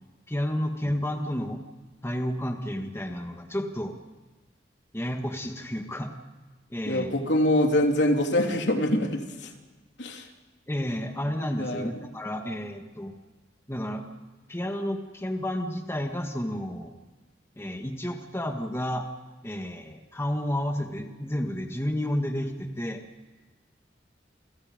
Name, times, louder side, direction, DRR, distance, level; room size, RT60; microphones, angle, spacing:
voice 1, 0.3-1.6 2.0-3.9 4.9-6.1 6.7-7.1 10.7-13.1 13.7-14.1 14.5-17.0 17.6-19.1 19.4-23.0, equal, 15° left, 3 dB, 1.9 m, -31 dB
voice 2, 6.9-9.5 10.0-10.3 11.6-11.9, left 1 dB, 80° left, 2 dB, 3.5 m, -24 dB
29.0 x 25.5 x 5.3 m, 1.3 s
head